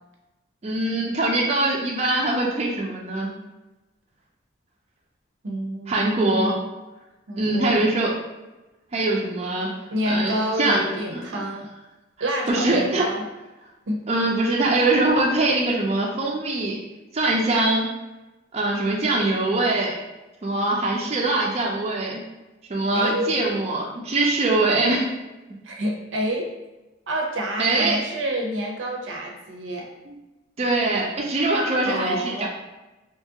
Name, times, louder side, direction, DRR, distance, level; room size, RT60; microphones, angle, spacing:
voice 1, 0.6-3.3 5.9-6.5 7.4-8.1 8.9-9.7 10.0-10.8 11.1-11.4 12.5-13.1 14.1-16.8 17.1-17.9 18.5-20.0 20.4-22.2 22.7-25.1 27.6-28.0 30.1-30.2 30.6-32.5, right 2 dB, 35° right, -2 dB, 0.4 m, -22 dB
voice 2, 5.4-6.5 7.3-7.9 9.9-11.7 12.2-13.2 13.9-14.0 22.9-23.3 25.6-26.5 27.1-29.9 31.8-32.5, equal, 80° right, 0 dB, 0.6 m, -28 dB
2.9 x 2.4 x 2.7 m, 1.1 s
head